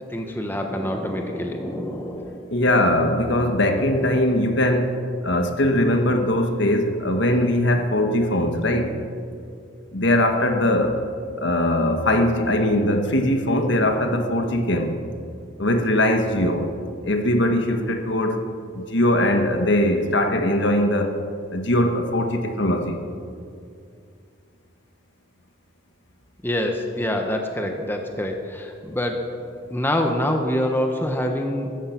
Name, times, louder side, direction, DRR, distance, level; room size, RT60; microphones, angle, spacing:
voice 1, 0.1-2.5 26.4-29.3 29.7-31.7, left 1 dB, 10° left, 3 dB, 1.1 m, -26 dB
voice 2, 2.5-5.0 5.2-8.9 9.9-11.0 11.4-14.9 15.6-16.7 17.0-18.4 18.7-21.2 21.5-23.0, left 1 dB, 60° left, 5 dB, 1.5 m, -21 dB
15.0 x 14.5 x 6.0 m, 2.4 s
head